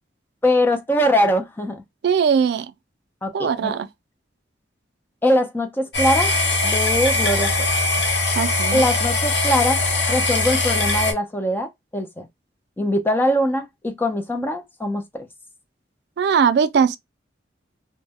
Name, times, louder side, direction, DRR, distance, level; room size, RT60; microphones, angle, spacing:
voice 1, 0.4-1.8 3.2-3.7 5.2-6.3 6.6-7.5 8.7-9.8 10.1-12.3 12.8-15.3, left 1 dB, 10° left, 0.4 m, -22 dB
voice 2, 2.0-2.7 3.3-3.9 8.4-8.8 16.2-17.0, right 6 dB, 65° right, 0.3 m, -19 dB
sound 1, 5.9-11.1, left 2 dB, 70° left, 0.8 m, -21 dB
2.1 x 2.1 x 3.4 m
head